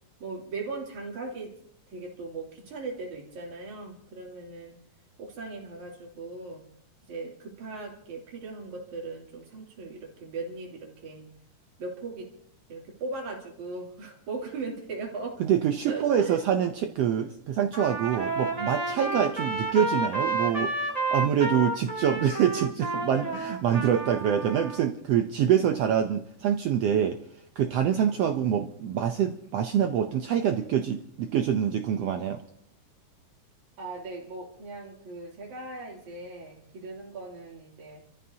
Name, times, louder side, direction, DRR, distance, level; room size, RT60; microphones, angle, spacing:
voice 1, 0.2-1.5 1.9-4.8 5.2-6.6 7.1-11.3 11.8-12.3 12.7-15.4 15.8-16.4 33.8-38.0, right 3 dB, 65° right, -1 dB, 4.2 m, -38 dB
voice 2, 15.4-27.2 27.6-32.4, right 9 dB, 85° right, 6 dB, 1.3 m, -25 dB
Trumpet, 17.7-24.8, right 2 dB, 20° right, 1.2 m, -31 dB
30.0 x 14.0 x 2.8 m, 0.68 s
omnidirectional pair, 3.8 m